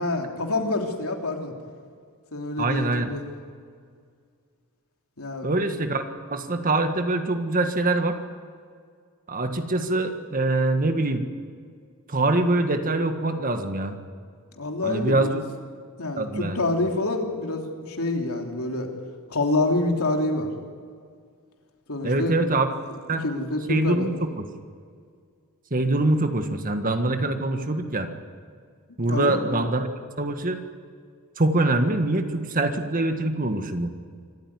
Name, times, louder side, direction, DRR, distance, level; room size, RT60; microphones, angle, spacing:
voice 1, 0.0-1.5 2.3-3.2 5.2-5.5 14.6-15.4 16.0-18.9 19.3-20.5 21.9-22.3 23.2-24.1 29.1-29.4, left 2 dB, 75° left, 2 dB, 3.2 m, -27 dB
voice 2, 2.6-3.1 5.4-6.0 6.3-8.2 9.3-11.2 12.1-14.0 14.8-15.4 16.2-16.6 22.0-22.7 23.1-23.2 23.7-24.5 25.7-28.1 29.0-29.9 30.2-30.6 31.4-33.9, right 2 dB, 40° right, 7 dB, 1.7 m, -24 dB
26.0 x 14.5 x 9.7 m, 2.1 s
head